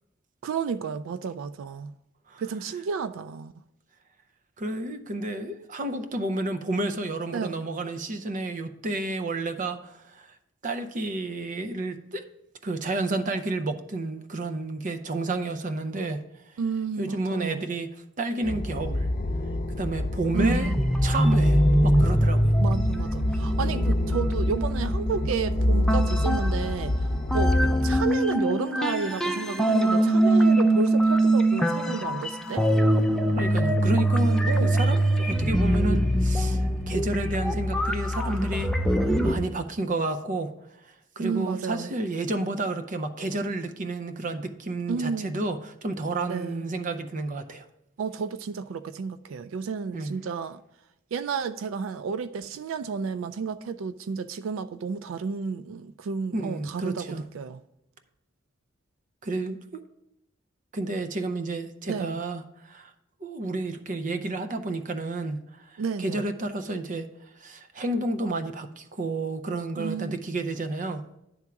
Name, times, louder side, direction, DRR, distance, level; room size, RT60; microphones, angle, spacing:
voice 1, 0.4-1.9 2.4-3.5 7.3-7.7 16.6-17.7 20.3-20.8 22.6-27.0 27.3-32.7 34.5-34.8 41.2-41.9 44.9-45.4 46.3-46.7 48.0-50.6 51.1-57.6 61.8-62.2 65.8-66.2 69.8-70.2, right 5 dB, 90° right, 0.3 m, -31 dB
voice 2, 4.6-10.3 10.6-12.2 12.6-16.2 17.0-17.9 18.2-19.1 19.7-20.7 21.0-22.6 33.3-38.7 39.2-40.5 41.2-47.6 49.9-50.2 56.3-57.3 59.2-59.8 60.7-62.9 63.2-65.4 65.7-67.1 67.4-71.0, right 2 dB, 40° right, 0.6 m, -31 dB
sound 1, 18.4-28.1, left 1 dB, 45° left, 0.8 m, -26 dB
sound 2, 20.3-27.0 27.3-39.3, right 1 dB, 5° left, 0.5 m, -24 dB
10.5 x 3.6 x 5.8 m
head